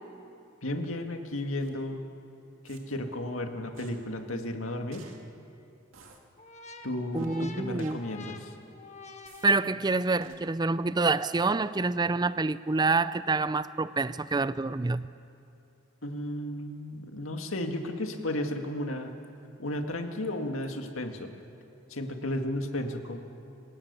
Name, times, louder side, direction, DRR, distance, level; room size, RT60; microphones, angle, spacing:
voice 1, 0.6-2.0 2.6-5.0 6.8-8.5 16.0-19.1 19.6-21.3 21.9-23.2, left 1 dB, 85° left, 4 dB, 2.0 m, -33 dB
sound 1, 1.6-1.7 2.7-2.8 3.7-3.9 4.9-5.2 5.9-6.2 7.1-7.3 7.8-7.9 9.3-9.4 10.2-10.4, right 5 dB, 75° right, 2.3 m, -52 dB
sound 2, 6.4-10.3, left 3 dB, 35° left, 1.3 m, -48 dB
voice 2, 7.1-8.0 9.4-15.1, right 3 dB, 20° right, 16 dB, 0.4 m, -27 dB
26.5 x 18.0 x 7.0 m, 2.8 s
head